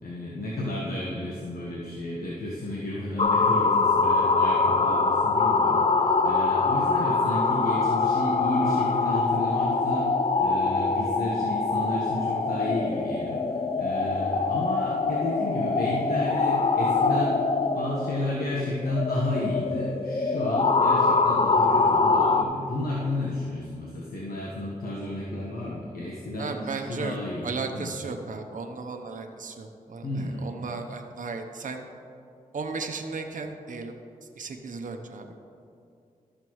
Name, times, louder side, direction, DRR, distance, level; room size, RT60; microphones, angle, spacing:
voice 1, 0.0-17.4 17.7-27.9 30.0-30.5, left 1 dB, 80° left, -5 dB, 1.2 m, -32 dB
sound 1, 3.2-22.4, left 4 dB, 40° left, 0.5 m, -24 dB
voice 2, 26.4-27.2 27.4-31.8 32.5-33.9 34.4-35.3, right 4 dB, 60° right, 4 dB, 0.7 m, -35 dB
12.5 x 6.7 x 3.1 m, 2.5 s
cardioid pair, 55°, 15 cm